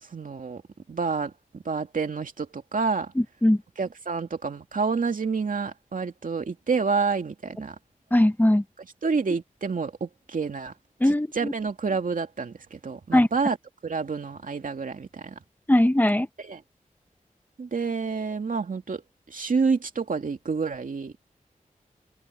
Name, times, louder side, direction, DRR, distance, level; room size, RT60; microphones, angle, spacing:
voice 1, 0.1-0.6 0.9-3.1 3.8-7.8 8.8-10.7 11.0-13.6 13.8-15.4 16.4-16.6 17.6-19.0 19.3-21.1, right 5 dB, 75° right, 2.4 m, -28 dB
voice 2, 8.1-8.6 11.0-11.5 13.1-13.3 15.7-16.3, left 1 dB, 15° left, 1.1 m, -19 dB
open air
wide cardioid pair, 95°, 14 cm